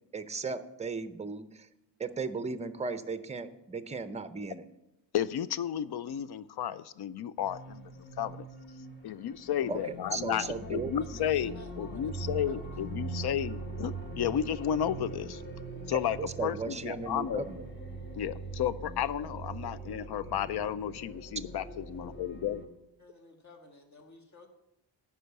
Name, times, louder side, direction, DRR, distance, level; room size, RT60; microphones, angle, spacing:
voice 1, 0.1-1.7 2.0-4.7 9.7-9.8 10.1-10.9 16.2-17.6, right 4 dB, 15° right, 11 dB, 0.6 m, -36 dB
voice 2, 5.1-8.4 9.0-11.5 11.8-15.4 15.9-17.5 18.2-22.6, left 10 dB, 60° left, 17 dB, 0.5 m, -33 dB
sound 1, 7.4-22.7, right 3 dB, 25° left, 1.5 m, -42 dB
voice 3, 9.6-12.8 23.0-24.5, left 2 dB, 40° left, 4 dB, 1.7 m, -52 dB
10.0 x 5.6 x 8.1 m, 0.90 s
wide cardioid pair, 145°, 44 cm